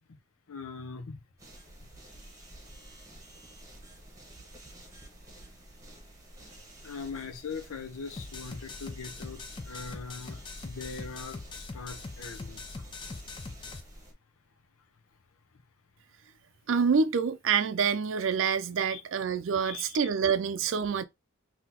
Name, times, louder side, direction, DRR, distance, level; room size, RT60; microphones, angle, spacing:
voice 1, 0.5-1.2 6.8-12.7 18.9-19.0 19.6-20.1, left 5 dB, 90° left, 0.7 m, -41 dB
sound 1, 1.4-14.1, right 1 dB, 15° right, 1.0 m, -51 dB
sound 2, 8.2-13.8, left 3 dB, 20° left, 0.3 m, -42 dB
voice 2, 16.7-21.0, right 6 dB, 70° right, 0.4 m, -27 dB
3.8 x 2.8 x 2.8 m
head